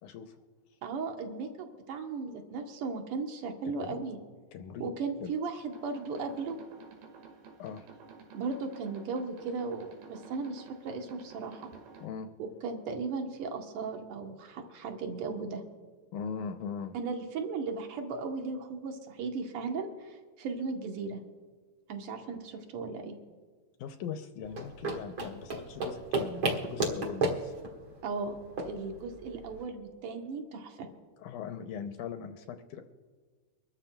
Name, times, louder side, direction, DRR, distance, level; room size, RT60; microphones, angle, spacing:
voice 1, 0.0-0.4 3.7-4.0 4.5-4.9 5.2-5.3 7.6-7.9 12.0-12.3 16.1-17.0 23.8-27.5 31.2-32.8, left 7 dB, 80° left, 7 dB, 1.9 m, -40 dB
voice 2, 0.8-4.2 4.8-6.6 8.3-11.7 12.4-15.6 16.9-21.2 21.9-23.2 28.0-28.4 28.6-30.9, right 4 dB, 70° right, 4 dB, 1.3 m, -36 dB
sound 1, 5.5-12.1, right 5 dB, 85° right, 3.4 m, -52 dB
sound 2, 24.4-29.6, right 2 dB, 50° right, 1.7 m, -34 dB
24.0 x 13.0 x 2.2 m, 1.5 s
omnidirectional pair, 4.0 m